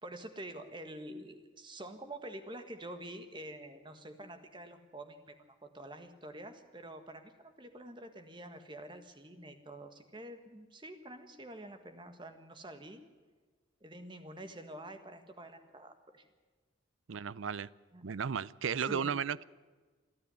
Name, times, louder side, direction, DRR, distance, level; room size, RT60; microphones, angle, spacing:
voice 1, 0.0-5.3 5.6-13.0 13.8-16.2 17.9-18.0 18.8-19.1, right 1 dB, 25° right, 7 dB, 1.7 m, -47 dB
voice 2, 17.1-17.7 18.0-19.4, right 7 dB, 75° right, 19 dB, 0.5 m, -34 dB
28.0 x 9.6 x 9.9 m, 1.4 s
head